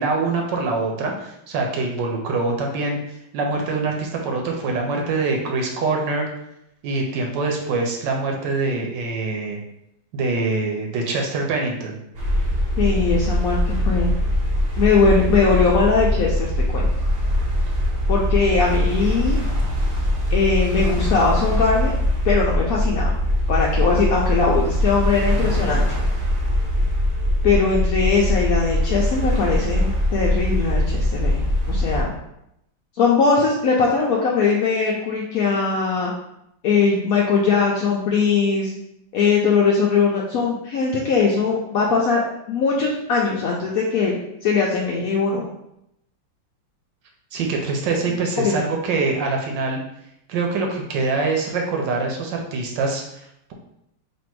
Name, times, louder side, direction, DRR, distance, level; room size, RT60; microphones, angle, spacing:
voice 1, 0.0-3.0 3.3-6.3 6.8-9.6 10.1-12.0 47.3-49.8 50.3-53.5, right 3 dB, 75° right, 1 dB, 1.3 m, -24 dB
sound 1, 12.1-32.0, left 1 dB, 45° right, 0.8 m, -22 dB
voice 2, 12.8-14.1 14.8-16.9 18.1-19.4 20.3-21.9 22.2-23.1 23.5-25.8 27.4-32.1 33.0-36.1 36.6-38.7 39.1-42.2 42.5-44.2 44.4-45.4 48.4-48.7, left 4 dB, 80° left, -3 dB, 0.8 m, -20 dB
3.3 x 2.6 x 4.5 m, 0.80 s
omnidirectional pair, 2.1 m